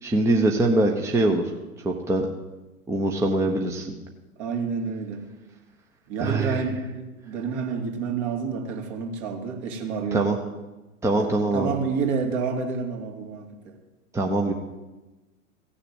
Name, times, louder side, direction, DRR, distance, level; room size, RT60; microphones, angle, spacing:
voice 1, 0.0-1.4 1.8-2.3 2.9-4.0 6.2-6.6 10.1-10.4 11.0-11.7 14.1-14.5, right 2 dB, 5° right, 1 dB, 1.0 m, -23 dB
voice 2, 4.4-5.3 6.1-10.3 11.2-13.8, right 5 dB, 45° right, 2 dB, 2.7 m, -29 dB
16.0 x 6.8 x 8.9 m, 1.1 s
figure-of-eight pair, 100°, 45 cm